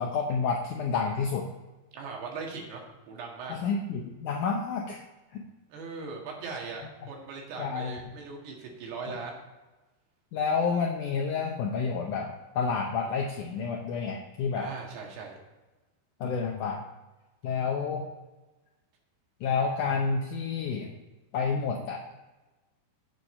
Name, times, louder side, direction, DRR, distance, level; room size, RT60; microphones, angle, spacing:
voice 1, 0.0-1.5 3.5-5.0 5.3-5.4 7.6-8.0 10.3-14.7 16.2-16.9 17.4-18.1 19.4-20.9 21.3-22.1, left 5 dB, 80° left, 2 dB, 1.8 m, -29 dB
voice 2, 1.9-3.6 5.7-9.4 14.5-15.4, right 4 dB, 85° right, -1 dB, 4.0 m, -39 dB
8.9 x 8.2 x 4.4 m, 1.2 s
omnidirectional pair, 4.6 m